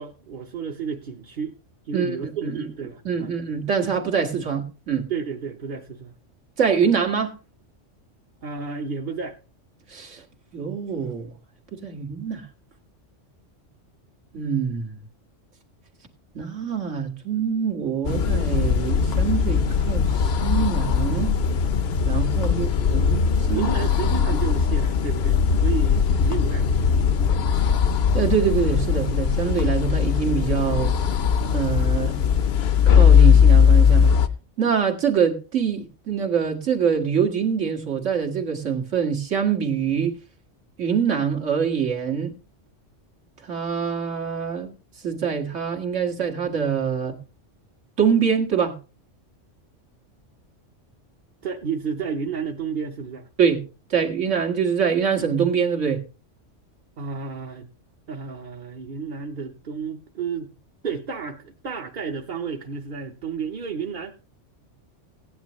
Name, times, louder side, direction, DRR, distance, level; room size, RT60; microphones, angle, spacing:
voice 1, 0.0-1.5 1.8-3.3 5.1-6.1 8.4-9.4 23.5-26.9 51.4-53.3 57.0-57.7 58.1-60.5 60.8-64.3, right 6 dB, 45° right, 1.0 m, -31 dB
voice 2, 3.0-5.1 6.6-7.3 9.9-10.2 10.5-11.3 11.7-12.5 14.3-15.0 16.3-21.3 22.0-23.7 28.1-30.9 31.5-32.1 32.9-34.1 34.6-40.1 40.8-42.3 43.4-44.7 45.0-47.2 48.0-48.8 53.4-53.6 53.9-56.0, right 7 dB, 75° right, 2.2 m, -24 dB
sound 1, 18.0-34.3, left 7 dB, 60° left, 0.9 m, -19 dB
16.5 x 10.0 x 3.1 m
omnidirectional pair, 1.3 m